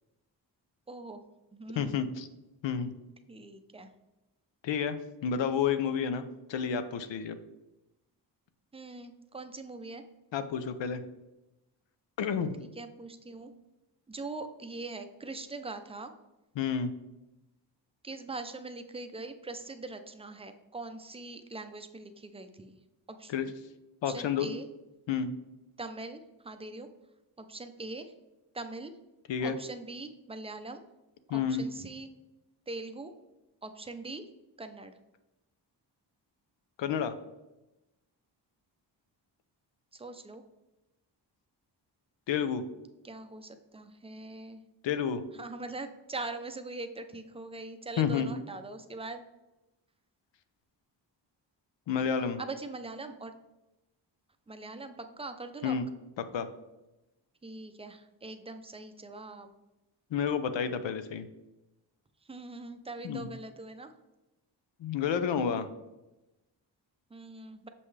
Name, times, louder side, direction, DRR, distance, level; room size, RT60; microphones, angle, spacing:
voice 1, 0.9-1.2 1.5-2.0 3.3-3.9 8.7-10.0 12.6-13.5 14.1-16.1 18.0-22.8 23.1-23.3 24.1-24.7 25.8-26.9 27.4-28.1 28.5-28.9 29.4-30.8 31.3-32.1 32.7-33.1 33.6-34.3 34.6-35.0 39.9-40.4 43.0-44.6 45.3-49.2 52.4-53.3 54.5-55.8 57.4-59.5 62.3-63.9 67.1-67.7, right 2 dB, 15° right, 8 dB, 0.5 m, -42 dB
voice 2, 1.8-2.3 2.6-2.9 4.6-6.2 6.5-7.4 10.3-11.0 12.2-12.5 16.6-16.9 23.3-23.5 24.0-24.5 25.1-25.3 29.3-29.6 31.3-31.6 36.8-37.1 42.3-42.6 44.8-45.2 48.0-48.3 51.9-52.4 55.6-55.9 56.3-56.5 60.1-61.2 63.0-63.2 64.8-65.7, left 7 dB, 85° left, 11 dB, 0.7 m, -30 dB
6.8 x 5.5 x 3.2 m, 1.0 s
wide cardioid pair, 130°, 43 cm